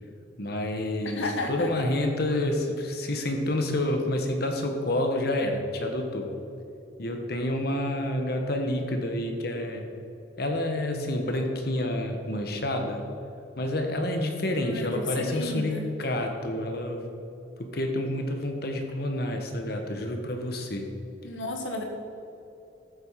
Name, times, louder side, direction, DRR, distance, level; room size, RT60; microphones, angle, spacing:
voice 1, 0.4-6.3 7.0-9.8 10.4-13.0 13.6-17.1 17.6-20.9, left 1 dB, 55° left, 3 dB, 1.5 m, -28 dB
voice 2, 1.0-1.7 14.6-15.9 21.2-21.8, left 2 dB, 90° left, 3 dB, 1.8 m, -33 dB
14.0 x 8.1 x 5.8 m, 2.8 s
head